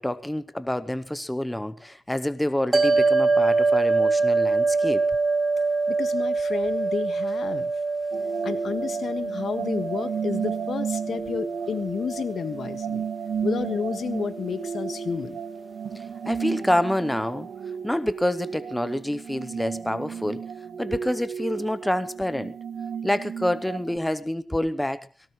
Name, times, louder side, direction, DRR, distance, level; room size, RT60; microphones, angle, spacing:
voice 1, 0.0-5.0 15.9-17.5 17.8-20.4 20.8-22.6 23.0-25.1, left 1 dB, 5° left, 0.7 m, -27 dB
sound 1, 2.7-15.2, right 3 dB, 25° right, 2.7 m, -25 dB
voice 2, 5.9-7.7 8.4-13.1 13.4-15.4, left 6 dB, 60° left, 1.6 m, -31 dB
sound 2, 8.1-24.0, right 7 dB, 70° right, 1.7 m, -34 dB
18.5 x 17.5 x 3.1 m
cardioid pair, 105°, 0 cm